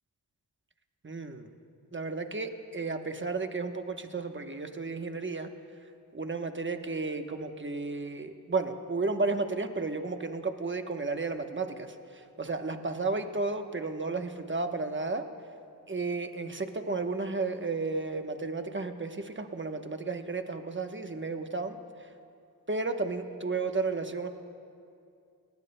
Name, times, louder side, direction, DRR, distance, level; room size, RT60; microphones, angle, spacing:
voice 1, 1.0-1.5 1.9-5.5 6.1-15.3 15.9-22.1 22.7-24.3, right 3 dB, 30° right, 6 dB, 1.0 m, -33 dB
21.5 x 19.0 x 2.2 m, 2.4 s
cardioid pair, 55°, 41 cm